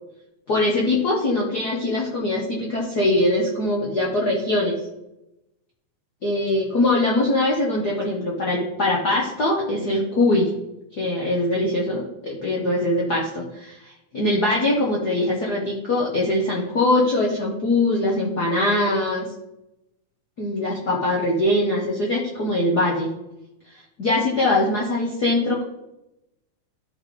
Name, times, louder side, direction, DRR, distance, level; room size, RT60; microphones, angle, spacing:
voice 1, 0.5-4.7 6.2-10.5 11.0-19.3 20.4-23.1 24.0-25.6, left 1 dB, 55° left, -4 dB, 1.1 m, -22 dB
12.5 x 4.3 x 4.9 m, 0.91 s
omnidirectional pair, 3.4 m